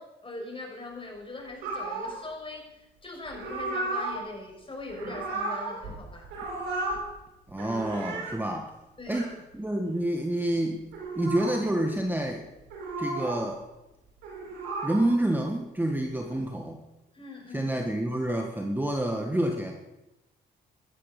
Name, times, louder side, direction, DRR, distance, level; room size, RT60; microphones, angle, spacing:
voice 1, 0.0-6.3 9.0-9.3 17.1-17.8, left 2 dB, 25° left, 0 dB, 6.0 m, -41 dB
sound 1, 1.6-2.2 3.3-4.2 4.8-6.0 6.2-7.0 7.5-8.4 9.0-9.3 10.8-11.6 12.6-13.4 14.1-15.2 16.1-16.4, right 2 dB, 90° right, 4.7 m, -34 dB
voice 2, 7.5-8.7 9.1-10.8 11.1-12.4 13.0-13.6 14.8-16.8 17.5-19.7, right 1 dB, 10° right, 3 dB, 1.6 m, -28 dB
14.5 x 12.5 x 5.3 m, 1.0 s
supercardioid pair, 65°, 19 cm